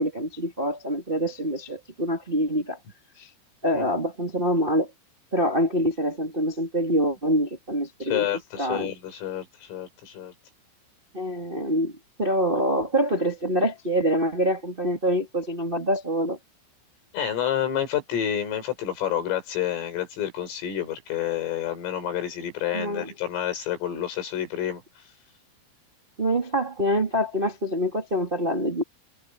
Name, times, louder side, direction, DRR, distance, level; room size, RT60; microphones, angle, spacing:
voice 1, 0.0-2.8 3.2-3.3 3.6-4.9 5.3-8.3 8.6-8.9 11.1-11.9 12.2-16.4 22.7-23.1 26.2-28.8, equal, 30° right, 0.9 m, -25 dB
voice 2, 8.0-10.3 17.1-24.8, left 10 dB, 75° left, 8.4 m, -29 dB
omnidirectional pair, 5.8 m